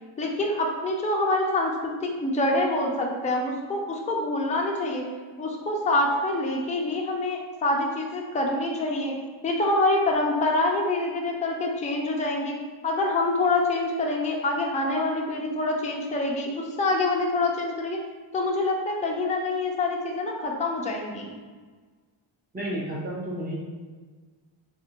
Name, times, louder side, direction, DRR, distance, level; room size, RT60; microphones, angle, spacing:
voice 1, 0.2-5.0 5.4-9.1 9.4-12.5 12.8-18.0 18.3-21.3, left 2 dB, 15° left, 0 dB, 0.4 m, -26 dB
voice 2, 22.5-23.5, right 1 dB, 20° right, -4 dB, 0.8 m, -31 dB
3.4 x 2.5 x 2.9 m, 1.5 s
wide cardioid pair, 110°, 49 cm